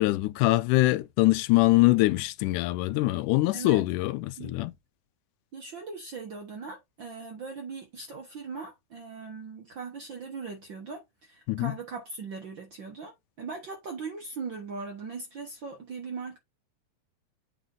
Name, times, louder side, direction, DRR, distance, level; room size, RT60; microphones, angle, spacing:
voice 1, 0.0-4.7 11.5-11.7, left 19 dB, 85° left, 2.0 m, -23 dB
voice 2, 3.5-3.8 4.4-4.6 5.5-16.4, right 4 dB, 60° right, 1.3 m, -39 dB
7.9 x 4.1 x 3.7 m
omnidirectional pair, 3.6 m